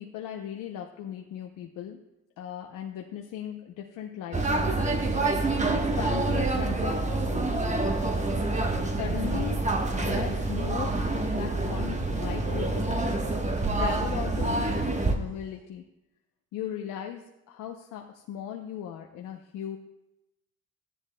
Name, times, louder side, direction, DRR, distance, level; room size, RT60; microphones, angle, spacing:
voice 1, 0.0-2.0 2.4-4.8 5.7-7.7 8.9-9.7 10.0-11.0 11.3-13.1 13.8-15.8 16.5-19.8, left 10 dB, 90° left, 3 dB, 0.7 m, -38 dB
sound 1, 4.3-15.2, right 2 dB, 25° right, 1.1 m, -27 dB
Buzz, 7.5-15.6, right 1 dB, 40° right, 4.1 m, -46 dB
14.0 x 10.0 x 2.2 m, 0.94 s
cardioid pair, 90°, 30 cm